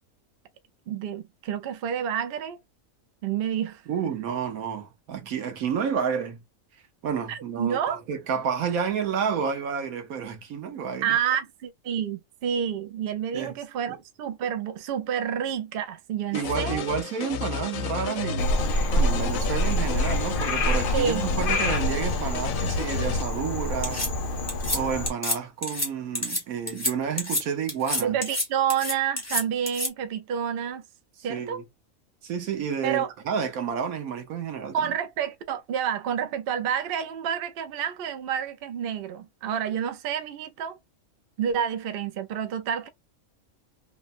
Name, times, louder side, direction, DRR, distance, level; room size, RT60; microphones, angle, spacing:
voice 1, 0.9-2.6 3.2-3.8 7.3-8.0 11.0-16.8 20.9-21.5 28.0-30.8 31.2-31.6 32.8-33.1 34.7-40.8 41.4-42.9, right 8 dB, 65° right, 0.6 m, -29 dB
voice 2, 3.9-6.4 7.0-11.2 13.3-13.5 13.9-14.0 16.3-24.1 24.7-28.1 31.3-31.6 32.2-34.9, right 7 dB, 85° right, 1.3 m, -30 dB
sound 1, 16.3-23.2, left 5 dB, 75° left, 0.9 m, -31 dB
Frog, 18.4-25.1, left 1 dB, 55° left, 0.6 m, -27 dB
sound 2, 23.8-24.1 24.5-24.8 25.1-25.4 25.6-25.9 26.2-26.4 26.7-26.9 27.2-27.4 27.7-28.4 28.7-29.9, left 1 dB, 10° left, 1.0 m, -28 dB
3.1 x 2.1 x 2.5 m
omnidirectional pair, 1.5 m